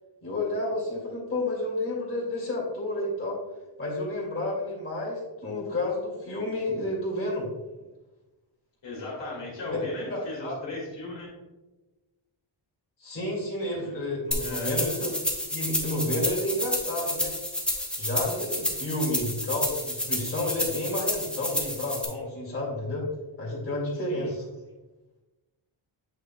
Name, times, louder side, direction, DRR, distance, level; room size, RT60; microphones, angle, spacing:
voice 1, 0.2-3.4 3.8-7.5 9.7-9.8 10.1-10.5 13.0-15.1 15.5-17.3 18.0-23.1 23.4-24.4, left 1 dB, 30° left, -5 dB, 2.2 m, -30 dB
voice 2, 8.8-11.3 13.6-14.0 14.4-14.7 24.0-24.3, left 2 dB, 65° left, -3 dB, 2.2 m, -37 dB
sound 1, 14.3-22.0, left 1 dB, ahead, 1.0 m, -30 dB
8.0 x 6.4 x 2.2 m, 1.1 s
wide cardioid pair, 170°, 47 cm